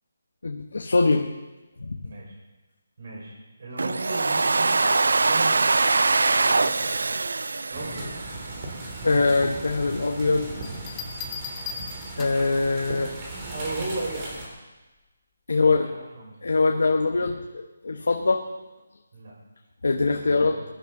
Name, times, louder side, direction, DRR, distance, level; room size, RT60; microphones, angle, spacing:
voice 1, 0.4-1.3 1.8-1.9 9.0-10.4 12.2-13.1 15.5-15.9 16.4-17.4 17.8-18.5 19.8-20.6, left 3 dB, 85° left, 3 dB, 1.2 m, -22 dB
voice 2, 2.0-2.4 3.0-5.6 6.4-6.9 7.7-8.2 13.5-14.4 15.5-16.4 18.0-18.2 19.1-19.3 19.9-20.6, right 2 dB, 45° right, -2 dB, 5.3 m, -36 dB
Domestic sounds home sounds, 3.8-8.7, right 3 dB, 85° right, 0.4 m, -23 dB
sound 1, 7.7-14.5, right 2 dB, 20° right, 2.6 m, -37 dB
Bell, 10.6-12.6 14.2-14.5, left 6 dB, 10° left, 0.8 m, -38 dB
21.0 x 11.5 x 3.9 m, 1.2 s
hypercardioid pair, 175°, 0 cm